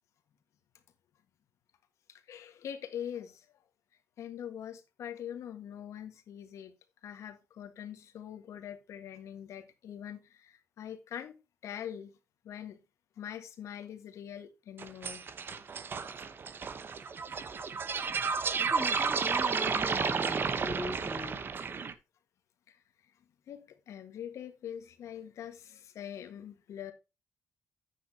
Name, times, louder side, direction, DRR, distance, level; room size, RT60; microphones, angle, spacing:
voice 1, 2.1-3.6 4.2-6.8 7.0-12.2 12.4-12.8 13.2-15.3 22.7-23.1 23.5-26.9, left 9 dB, 70° left, 1.6 m, -43 dB
sound 1, 14.8-21.9, right 5 dB, 45° right, 1.0 m, -32 dB
voice 2, 18.6-21.4, left 2 dB, 10° left, 1.1 m, -41 dB
10.0 x 8.6 x 2.9 m
cardioid pair, 90°, 5 cm